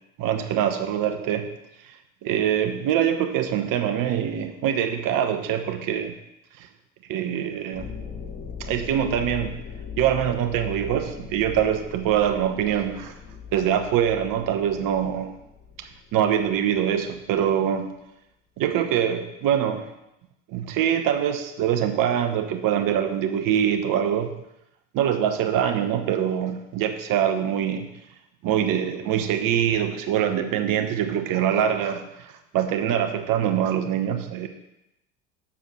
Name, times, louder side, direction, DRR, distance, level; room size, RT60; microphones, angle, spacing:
voice 1, 0.2-1.5 2.2-6.1 6.6-6.7 7.1-7.9 8.6-9.6 10.0-13.1 13.5-15.3 15.8-17.9 18.6-19.9 20.5-24.3 24.9-27.9 28.4-34.5, right 9 dB, 50° right, 7 dB, 1.1 m, -24 dB
sound 1, 7.7-17.2, left 6 dB, 25° left, 2.5 m, -40 dB
7.0 x 4.9 x 6.2 m, 0.88 s
hypercardioid pair, 80°, 41 cm